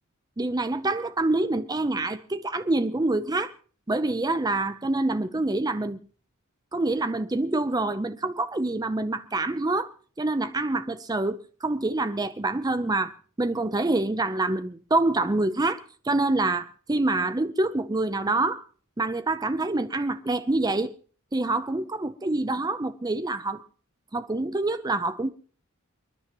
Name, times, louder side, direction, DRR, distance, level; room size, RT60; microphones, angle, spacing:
voice 1, 0.4-3.5 3.9-6.0 6.7-9.9 10.2-15.8 16.0-18.6 19.0-20.9 21.3-23.6 24.1-25.3, right 2 dB, 20° right, 0.6 m, -26 dB
29.0 x 10.0 x 3.0 m
head